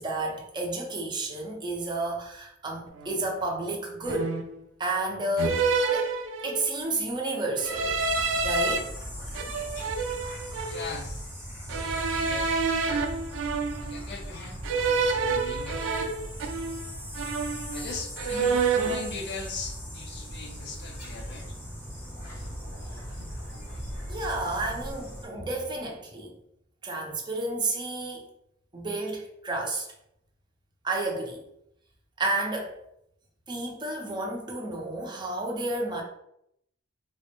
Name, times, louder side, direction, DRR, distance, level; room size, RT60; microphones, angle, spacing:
voice 1, 0.0-4.4 4.8-6.1 6.4-8.0 8.4-8.9 24.1-26.3 26.8-28.3 28.7-29.9 30.8-31.4 32.2-32.7 33.5-36.0, right 2 dB, 25° right, 0 dB, 0.6 m, -31 dB
sound 1, 3.0-3.2 4.0-4.6 5.4-6.8 7.6-8.8 9.3-10.9 11.7-14.0 14.6-16.9 17.1-17.9 18.2-19.1, right 4 dB, 70° right, 0.4 m, -28 dB
sound 2, 7.7-15.2 15.6-16.3 18.0-18.5 19.4-19.6 20.8-21.6 22.0-26.4, equal, 80° left, 0.9 m, -43 dB
sound 3, 8.0-25.2, equal, 10° left, 0.7 m, -40 dB
voice 2, 10.7-11.3 12.0-12.6 13.8-16.3 17.7-21.6, left 3 dB, 60° left, 3 dB, 0.5 m, -40 dB
3.4 x 2.1 x 2.8 m, 0.77 s
head